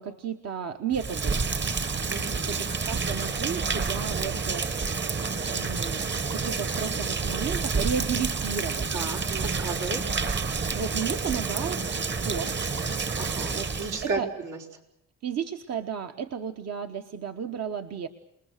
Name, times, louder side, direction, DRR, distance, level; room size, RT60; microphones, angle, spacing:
voice 1, 0.0-1.4 2.4-4.6 5.4-6.1 6.3-8.9 10.7-12.5 13.5-13.7 14.0-14.3 15.2-18.1, right 7 dB, 60° right, 6 dB, 1.2 m, -33 dB
Rain, 0.9-14.1, right 4 dB, 35° right, 1.4 m, -29 dB
voice 2, 2.1-2.5 8.9-10.0 13.2-14.6, right 3 dB, 80° right, 1 dB, 5.2 m, -33 dB
28.5 x 20.5 x 6.6 m, 0.80 s
cardioid pair, 90°, 30 cm